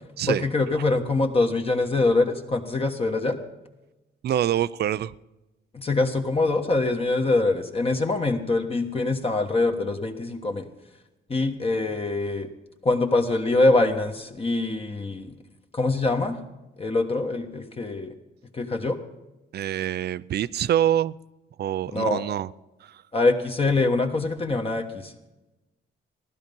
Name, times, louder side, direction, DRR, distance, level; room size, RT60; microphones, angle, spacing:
voice 1, 0.3-3.4 5.7-10.7 11.3-12.5 12.8-15.3 15.7-16.4 16.8-18.1 18.5-19.0 21.9-22.2 23.1-25.1, left 2 dB, 30° left, 3 dB, 1.3 m, -24 dB
voice 2, 4.2-5.1 19.5-21.2 21.6-22.5 22.8-23.0, right 11 dB, 55° right, 19 dB, 0.4 m, -25 dB
16.0 x 11.5 x 5.4 m, 1.0 s
cardioid pair, 90°, 20 cm